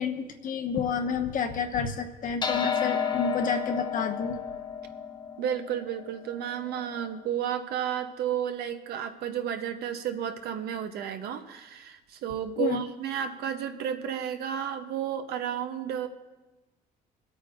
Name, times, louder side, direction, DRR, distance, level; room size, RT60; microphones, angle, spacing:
voice 1, 0.0-4.4 12.6-12.8, left 6 dB, 50° left, 6 dB, 1.1 m, -30 dB
sound 1, 2.4-7.1, left 7 dB, 25° left, 0.9 m, -32 dB
voice 2, 5.4-16.1, right 9 dB, 70° right, 7 dB, 1.0 m, -32 dB
25.5 x 8.7 x 2.6 m, 1.1 s
cardioid pair, 110°, 17 cm